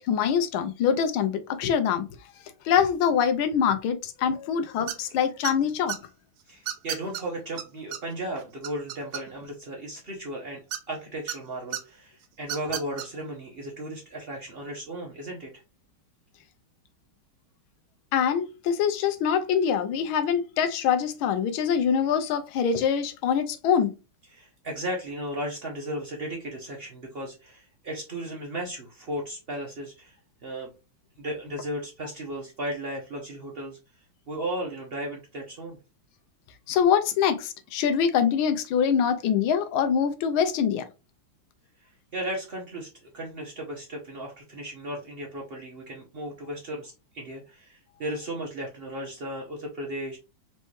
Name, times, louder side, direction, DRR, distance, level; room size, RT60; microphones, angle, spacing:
voice 1, 0.0-2.1 2.6-5.9 18.1-23.9 36.7-40.8, left 7 dB, 80° left, 1.5 m, -24 dB
sound 1, 4.9-5.1 5.4-6.0 6.7-7.2 7.6-7.7 7.9-8.0 8.4-9.5 10.7-11.4 11.7-11.8 12.4-13.1, right 11 dB, 90° right, 1.6 m, -32 dB
voice 2, 6.5-10.6 10.9-15.6 24.3-30.2 30.4-30.7 31.2-33.8 34.3-35.8 41.8-50.2, right 1 dB, 70° right, 0.5 m, -35 dB
4.4 x 3.2 x 3.1 m
omnidirectional pair, 2.4 m